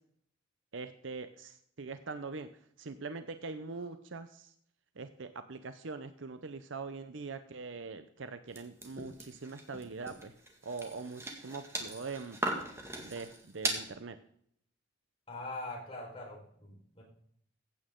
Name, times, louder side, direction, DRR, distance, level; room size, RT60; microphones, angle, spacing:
voice 1, 0.7-2.5 2.8-4.5 5.0-10.3 10.6-12.6 13.0-14.2, right 4 dB, 70° right, 10 dB, 0.7 m, -42 dB
sound 1, 8.6-13.9, right 1 dB, 15° right, 1.9 m, -39 dB
voice 2, 15.3-17.0, left 2 dB, 30° left, -2 dB, 4.7 m, -43 dB
15.5 x 8.7 x 3.8 m, 0.65 s
head